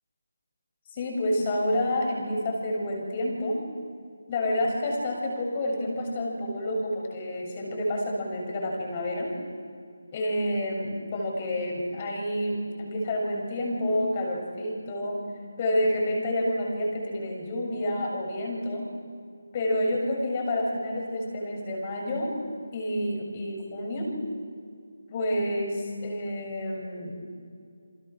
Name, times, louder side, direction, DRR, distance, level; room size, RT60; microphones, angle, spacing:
voice 1, 0.9-3.6 4.3-9.3 10.1-15.2 15.6-18.8 19.5-22.3 22.7-24.1 25.1-27.2, left 1 dB, 25° left, 0 dB, 7.2 m, -29 dB
29.5 x 27.5 x 6.5 m, 2.3 s
figure-of-eight pair, 155°, 0 cm